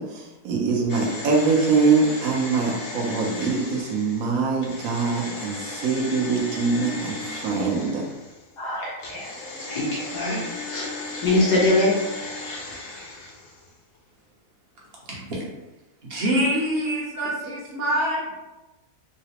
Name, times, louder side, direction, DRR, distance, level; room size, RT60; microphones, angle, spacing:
voice 1, 0.0-8.0, right 4 dB, 70° right, 0 dB, 1.0 m, -23 dB
sound 1, 0.9-8.5 9.0-13.7 13.9-14.0, left 2 dB, 65° left, 1.0 m, -36 dB
voice 2, 8.6-9.3 9.7-10.9 11.2-12.0, left 2 dB, 85° left, -5 dB, 1.6 m, -23 dB
voice 3, 15.1-15.4 16.0-18.3, equal, 50° right, -4 dB, 0.8 m, -25 dB
3.8 x 2.1 x 2.8 m, 1.1 s
omnidirectional pair, 1.7 m